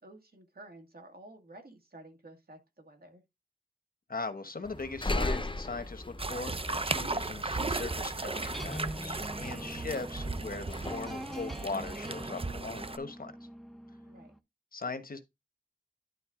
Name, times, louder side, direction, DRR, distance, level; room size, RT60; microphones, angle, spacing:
voice 1, 0.0-3.2 14.0-14.3, right 2 dB, 75° right, 2.2 m, -52 dB
voice 2, 4.1-13.3 14.7-15.2, left 3 dB, 65° left, 1.2 m, -39 dB
sound 1, 4.6-11.1, left 2 dB, 30° left, 0.8 m, -38 dB
sound 2, 6.2-13.0, right 3 dB, 35° right, 0.6 m, -36 dB
sound 3, 8.5-14.4, equal, ahead, 0.8 m, -43 dB
11.0 x 3.9 x 3.7 m
wide cardioid pair, 65°, 16 cm